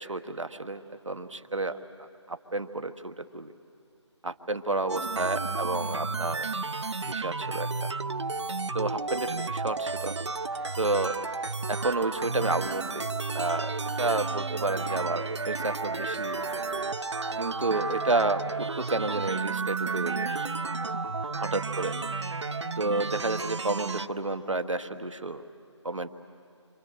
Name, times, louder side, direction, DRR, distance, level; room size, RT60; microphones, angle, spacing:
voice 1, 0.0-3.5 4.2-6.5 7.1-7.9 8.7-10.2 10.8-11.2 11.7-13.1 13.3-16.7 17.4-20.3 21.4-21.9 22.8-25.4 25.8-26.1, right 2 dB, 85° right, 9 dB, 1.4 m, -31 dB
sound 1, 4.9-24.1, right 4 dB, 65° right, 0.8 m, -32 dB
Wind instrument woodwind instrument, 10.5-17.0, right 3 dB, 45° right, 1.0 m, -44 dB
29.0 x 26.5 x 6.6 m, 2.4 s
figure-of-eight pair, 165°, 16 cm